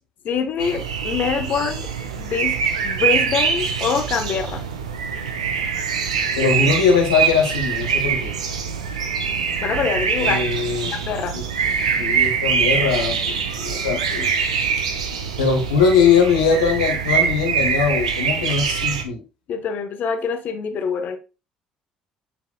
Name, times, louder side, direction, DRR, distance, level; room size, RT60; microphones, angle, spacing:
voice 1, 0.2-1.9 2.1-2.5 2.8-4.6 9.6-10.4 10.9-11.3 13.9-14.3 19.5-21.2, left 6 dB, 55° left, 6 dB, 1.2 m, -25 dB
sound 1, 0.6-19.0, right 6 dB, 90° right, 0.7 m, -24 dB
voice 2, 6.4-8.3 10.2-10.9 12.0-14.3 15.4-19.2, left 5 dB, 85° left, 2 dB, 1.4 m, -20 dB
8.9 x 4.7 x 2.3 m, 0.30 s
hypercardioid pair, 55°, 3 cm